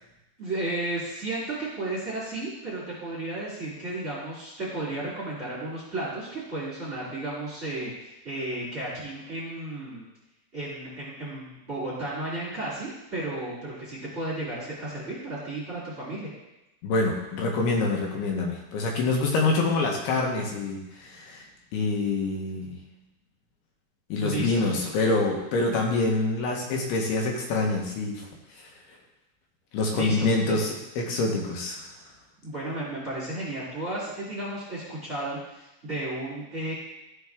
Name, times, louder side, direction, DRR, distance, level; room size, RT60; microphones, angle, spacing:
voice 1, 0.4-10.1 10.5-16.3 24.2-24.6 29.9-30.6 32.4-36.7, right 2 dB, 20° right, -8 dB, 2.2 m, -33 dB
voice 2, 16.8-21.5 21.7-22.8 24.1-28.3 29.7-31.8, left 3 dB, 80° left, 1 dB, 2.9 m, -26 dB
13.0 x 4.7 x 3.5 m, 0.95 s
omnidirectional pair, 4.6 m